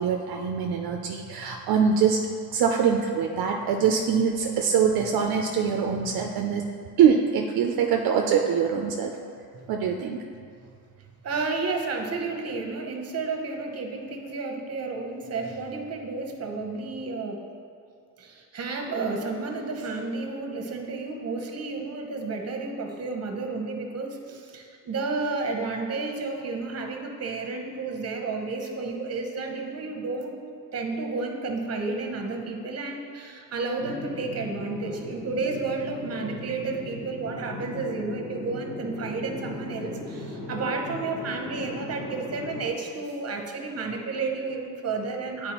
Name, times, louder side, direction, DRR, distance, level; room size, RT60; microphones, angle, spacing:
voice 1, 0.0-2.2 2.5-9.2 9.7-10.2, right 7 dB, 70° right, 2 dB, 0.5 m, -23 dB
voice 2, 11.2-17.4 18.2-30.4 30.7-45.5, right 3 dB, 40° right, 2 dB, 1.0 m, -31 dB
sound 1, 33.8-42.7, left 2 dB, 65° left, 1.5 m, -38 dB
8.8 x 4.5 x 3.0 m, 2.3 s
cardioid pair, 95°, 38 cm